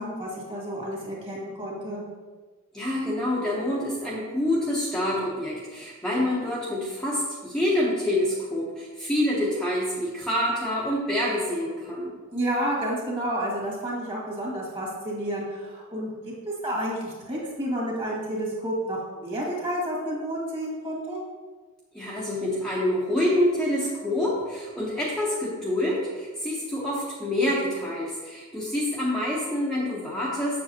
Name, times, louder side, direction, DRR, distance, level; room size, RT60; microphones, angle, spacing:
voice 1, 0.0-2.0 12.3-16.1 16.5-21.2, right 1 dB, 25° right, -4 dB, 2.2 m, -30 dB
voice 2, 2.7-12.1 21.9-30.6, left 1 dB, 5° left, -7 dB, 1.0 m, -27 dB
7.4 x 7.1 x 2.9 m, 1.4 s
head